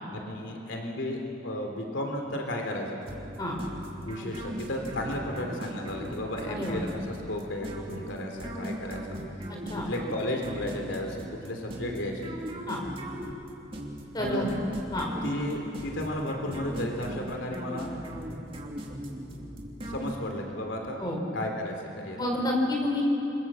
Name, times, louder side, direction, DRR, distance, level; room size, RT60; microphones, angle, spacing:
voice 1, 0.1-3.0 4.0-9.2 9.8-12.4 14.2-14.4 15.2-17.9 19.9-21.0 21.3-22.3, left 1 dB, 85° left, 2 dB, 3.2 m, -33 dB
sound 1, 3.1-20.6, equal, 30° right, 2.6 m, -39 dB
voice 2, 14.1-14.5 14.9-15.1 21.0-21.2 22.1-23.0, left 1 dB, 20° left, 0 dB, 4.5 m, -29 dB
27.5 x 22.5 x 7.5 m, 2.9 s
head